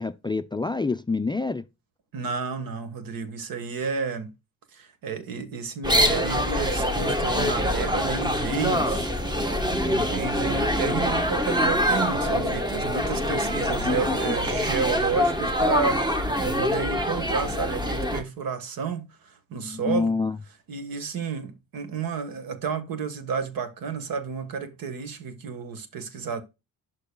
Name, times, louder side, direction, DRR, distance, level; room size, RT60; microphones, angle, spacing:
voice 1, 0.0-1.6 13.7-14.3 19.6-20.4, left 3 dB, 15° left, 0.4 m, -27 dB
voice 2, 2.1-4.3 4.7-9.2 9.8-16.1 16.4-20.2 20.7-26.4, right 5 dB, 70° right, 1.4 m, -31 dB
sound 1, 5.8-18.2, equal, 10° right, 1.1 m, -25 dB
11.5 x 4.0 x 2.2 m
cardioid pair, 85°, 36 cm